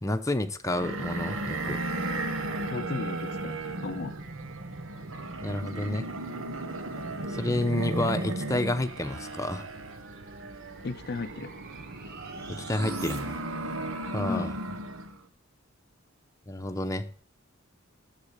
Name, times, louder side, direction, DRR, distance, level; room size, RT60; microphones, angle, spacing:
voice 1, 0.0-1.8 5.4-6.1 7.3-9.7 12.5-13.4 14.1-14.5 16.5-17.1, left 1 dB, 15° left, 7 dB, 0.8 m, -30 dB
sound 1, 0.7-15.2, right 2 dB, 75° right, 1.3 m, -35 dB
voice 2, 2.7-4.1 10.8-11.5 14.3-14.5, left 4 dB, 50° left, 11 dB, 0.5 m, -35 dB
sound 2, 6.9-13.2, right 4 dB, 50° right, 1.7 m, -50 dB
10.5 x 7.5 x 6.6 m, 0.44 s
head